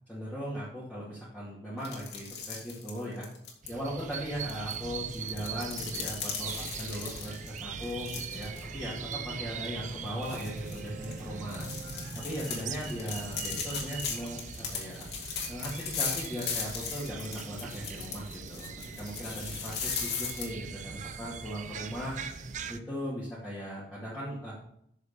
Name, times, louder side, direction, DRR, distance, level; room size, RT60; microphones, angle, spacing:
voice 1, 0.1-3.3 3.7-11.7 12.1-15.1 15.5-18.7 19.0-22.1 22.7-24.5, equal, 5° left, -9 dB, 2.5 m, -38 dB
sound 1, 1.8-3.7 4.5-8.6 9.0-9.1 9.6-9.7 10.2-20.5, left 6 dB, 60° left, 2.4 m, -37 dB
sound 2, 3.6-22.8, right 5 dB, 40° right, 0.5 m, -41 dB
sound 3, 5.2-14.6 15.0-15.1, right 2 dB, 75° right, 3.1 m, -52 dB
7.6 x 6.7 x 6.8 m, 0.72 s
head